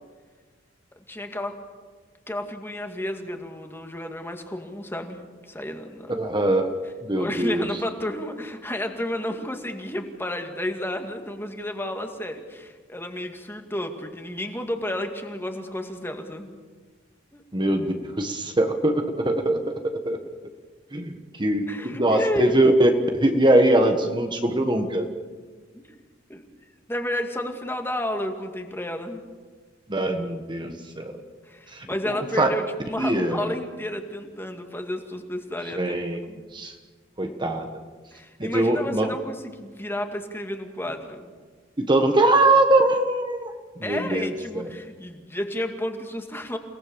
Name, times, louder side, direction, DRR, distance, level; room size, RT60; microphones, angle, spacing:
voice 1, 1.1-1.6 2.3-5.2 5.5-6.2 7.2-16.5 17.3-17.4 21.7-22.5 25.7-26.0 26.3-26.4 26.9-29.2 31.5-35.9 36.2-36.4 38.1-41.3 43.8-46.6, left 1 dB, 10° left, 5 dB, 2.1 m, -31 dB
voice 2, 6.2-6.7 7.0-7.7 17.5-20.2 20.9-25.1 29.9-31.2 31.7-31.9 32.4-32.5 33.0-33.5 35.8-36.2 36.5-36.7 37.2-37.7 38.4-39.1 41.8-43.5 43.8-44.3, right 1 dB, 25° right, 5 dB, 1.4 m, -22 dB
29.5 x 18.5 x 7.1 m, 1.5 s
head